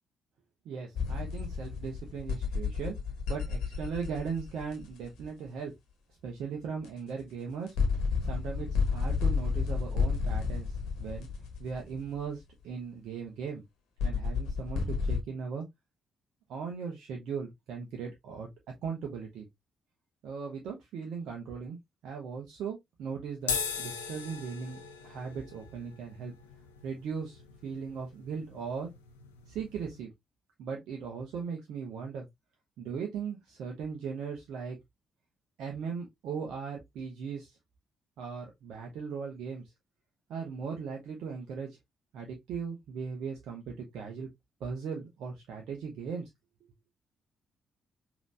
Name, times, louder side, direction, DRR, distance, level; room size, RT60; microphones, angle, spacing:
voice 1, 0.6-2.9 3.3-5.7 6.2-7.8 8.3-11.3 11.6-13.6 14.0-15.6 16.5-18.5 18.8-19.5 20.2-21.8 22.0-26.3 26.8-28.9 29.5-30.1 30.6-32.3 32.8-34.8 35.6-37.6 38.2-39.7 40.3-41.8 42.1-44.3 44.6-46.3, right 6 dB, 65° right, 0.9 m, -38 dB
sound 1, 1.0-5.1 6.8-6.9 7.7-12.2 14.0-15.2, left 5 dB, 70° left, 1.1 m, -31 dB
sound 2, 23.4-30.0, left 6 dB, 85° left, 0.5 m, -40 dB
5.2 x 3.0 x 2.5 m
hypercardioid pair, 40°, 0 cm